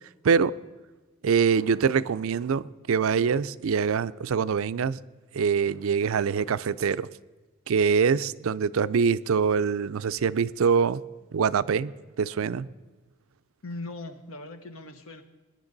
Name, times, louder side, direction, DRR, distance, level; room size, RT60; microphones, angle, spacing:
voice 1, 1.2-5.0 5.3-7.1 7.7-11.0 11.3-12.7, right 6 dB, 70° right, 0.4 m, -24 dB
voice 2, 13.6-15.2, left 2 dB, 75° left, 1.2 m, -39 dB
21.0 x 10.5 x 4.0 m
head